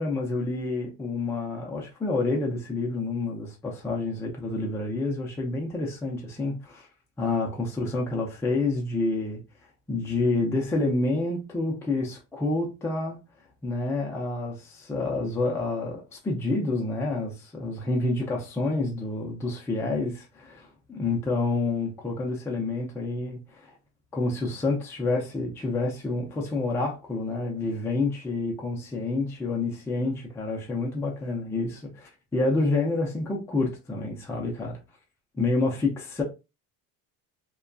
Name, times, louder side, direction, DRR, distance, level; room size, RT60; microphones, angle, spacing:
voice 1, 0.0-6.9 7.2-9.4 9.9-13.2 13.6-23.7 24.1-34.8 35.3-36.2, left 2 dB, 5° left, 0.3 m, -28 dB
2.5 x 2.2 x 2.2 m
cardioid pair, 140°, 40 cm